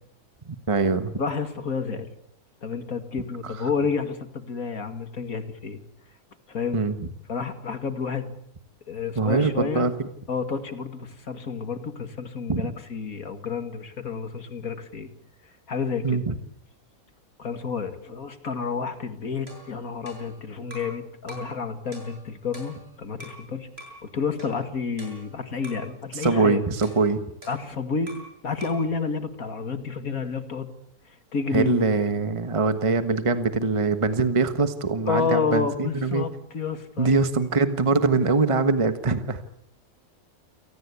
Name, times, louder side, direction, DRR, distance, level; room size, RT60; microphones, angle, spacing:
voice 1, 0.5-1.1 3.4-3.7 6.7-6.9 9.2-10.1 12.5-12.6 16.0-16.3 26.1-27.2 31.5-36.3 37.0-39.4, right 3 dB, 20° right, 9 dB, 1.4 m, -23 dB
voice 2, 1.2-2.1 2.6-5.8 6.5-6.8 7.3-8.3 8.9-9.9 10.3-15.1 15.7-16.2 17.4-23.7 24.0-26.6 27.5-30.7 31.1-31.8 35.1-37.3, left 5 dB, 70° left, 8 dB, 2.6 m, -30 dB
sound 1, 19.5-21.0 21.3-21.6 21.9-23.4 23.8-24.0 24.4-25.9 26.2-26.5 26.8-28.3 28.6-28.9, right 1 dB, 40° right, 8.3 m, -45 dB
29.5 x 18.5 x 8.4 m, 0.70 s
omnidirectional pair, 1.6 m